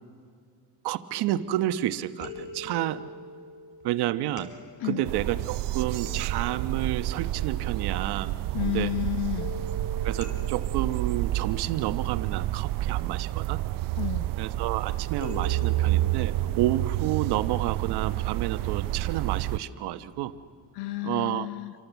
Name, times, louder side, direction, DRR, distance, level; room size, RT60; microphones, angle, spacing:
voice 1, 0.8-3.1 3.8-4.5 4.8-8.9 10.0-13.6 14.4-20.3 21.0-21.5, right 13 dB, 75° right, 11 dB, 1.1 m, -30 dB
sound 1, 1.3-1.8 2.2-7.8 9.4-12.6 15.2-18.5 19.2-19.3 19.7-19.8, left 2 dB, 60° left, 4.9 m, -44 dB
sound 2, 5.1-19.6, right 15 dB, 55° right, 0.6 m, -29 dB
voice 2, 8.5-9.6 14.0-14.3 20.7-21.7, left 17 dB, 85° left, 13 dB, 1.2 m, -31 dB
28.0 x 25.5 x 8.2 m, 2.3 s
cardioid pair, 150°, 39 cm